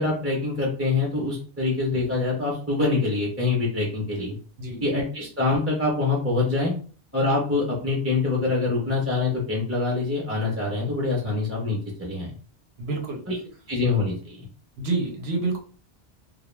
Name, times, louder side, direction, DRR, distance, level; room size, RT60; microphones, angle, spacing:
voice 1, 0.0-4.4 4.8-6.7 7.1-12.3 13.3-13.4 13.7-14.4, left 3 dB, 20° right, -3 dB, 0.5 m, -25 dB
voice 2, 12.8-13.2 14.8-15.6, right 3 dB, 85° right, 2 dB, 0.9 m, -27 dB
2.3 x 2.0 x 3.1 m, 0.41 s
omnidirectional pair, 1.0 m